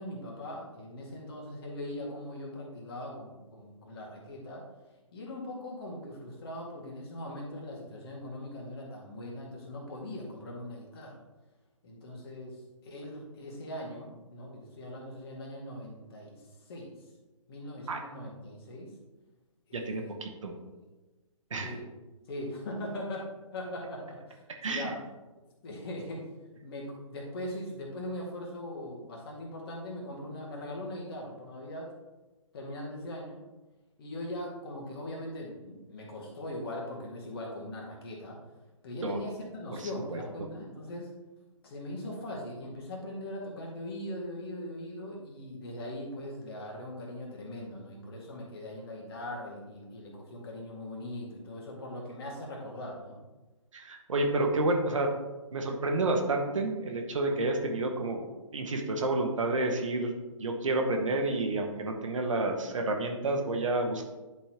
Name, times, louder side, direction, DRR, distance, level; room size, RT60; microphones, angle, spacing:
voice 1, 0.0-4.6 5.1-11.2 11.8-16.9 17.5-18.9 19.7-20.8 21.6-21.9 22.3-23.3 23.5-25.0 25.6-26.2 26.6-31.9 32.5-33.4 34.0-38.4 38.8-41.1 41.6-53.2 57.3-57.4, left 1 dB, 45° left, -2 dB, 1.9 m, -40 dB
voice 2, 19.7-20.5 21.5-21.7 24.6-24.9 39.0-39.2 39.8-40.2 53.7-55.1 55.5-58.2 58.5-60.1 60.4-64.1, right 2 dB, 65° right, 2 dB, 1.2 m, -30 dB
10.5 x 4.4 x 2.9 m, 1.2 s
figure-of-eight pair, 130°, 18 cm